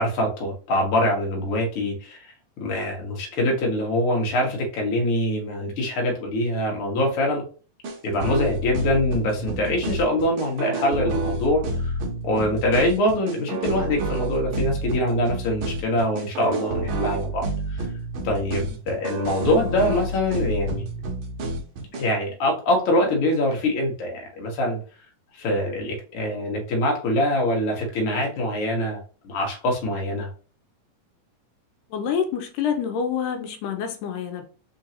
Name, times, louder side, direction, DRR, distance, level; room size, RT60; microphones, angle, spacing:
voice 1, 0.0-2.2 2.6-7.4 8.0-12.0 12.2-17.5 18.2-20.8 21.9-24.8 25.4-29.0 29.2-30.3, left 1 dB, 55° left, 1.8 m, -24 dB
sound 1, 7.8-22.0, right 1 dB, 75° right, 1.2 m, -29 dB
voice 2, 31.9-34.4, left 7 dB, 85° left, 2.2 m, -27 dB
4.5 x 3.8 x 2.8 m
omnidirectional pair, 3.7 m